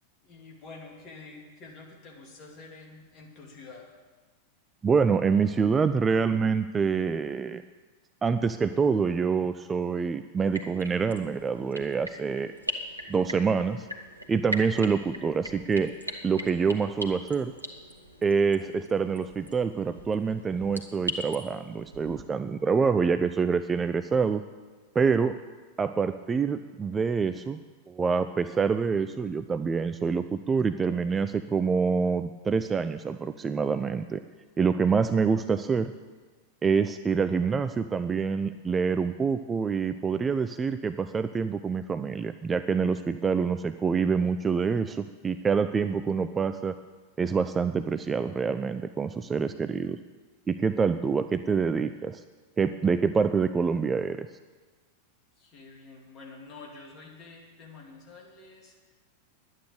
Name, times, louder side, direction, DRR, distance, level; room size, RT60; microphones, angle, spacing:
voice 1, 0.2-3.9 55.4-58.7, left 3 dB, 35° left, 0 dB, 2.7 m, -48 dB
voice 2, 4.8-7.6 8.2-12.5 13.1-13.9 14.3-15.9 16.2-17.5 18.2-24.4 25.0-25.4 25.8-27.6 27.9-34.2 34.6-35.9 36.6-46.8 47.2-50.0 50.5-52.2 52.6-54.3, right 5 dB, 15° right, 11 dB, 0.4 m, -26 dB
sound 1, 10.4-22.2, equal, 85° right, 1.2 m, -40 dB
11.5 x 9.2 x 8.0 m, 1.4 s
figure-of-eight pair, 90°, 0 cm